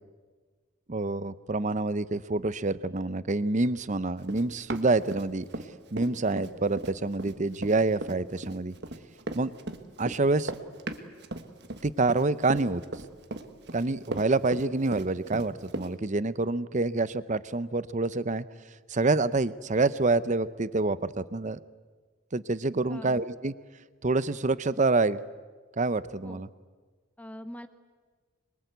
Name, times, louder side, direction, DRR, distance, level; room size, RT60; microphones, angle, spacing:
voice 1, 0.9-5.5 5.9-8.7 9.3-9.5 10.0-10.5 11.8-12.8 13.7-18.4 18.9-21.6 22.3-23.5 24.0-25.2 25.8-26.5, right 3 dB, 35° right, 15 dB, 0.7 m, -27 dB
Run, 4.2-5.7 6.0-15.9, right 2 dB, 55° right, 1.5 m, -36 dB
voice 2, 22.9-23.2 26.2-26.4 27.2-27.7, equal, 5° left, 10 dB, 0.9 m, -42 dB
25.0 x 22.5 x 8.1 m, 1.4 s
head